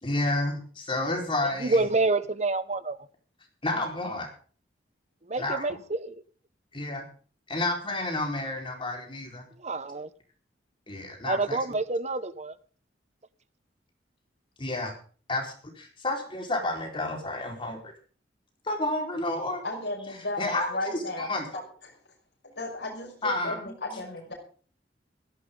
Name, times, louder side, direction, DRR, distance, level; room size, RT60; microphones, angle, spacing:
voice 1, 0.0-1.9 3.6-4.3 5.4-5.8 6.7-7.0 7.5-9.5 10.9-11.6 14.6-14.9 15.3-17.9 18.6-19.6 20.4-21.6 23.2-23.7, left 2 dB, 30° left, 4.5 m, -30 dB
voice 2, 1.6-3.0 5.3-6.1 9.6-10.1 11.2-12.5, right 3 dB, 40° right, 1.0 m, -27 dB
voice 3, 19.6-21.3 22.4-24.3, left 2 dB, 70° left, 6.0 m, -34 dB
17.0 x 14.5 x 3.8 m
head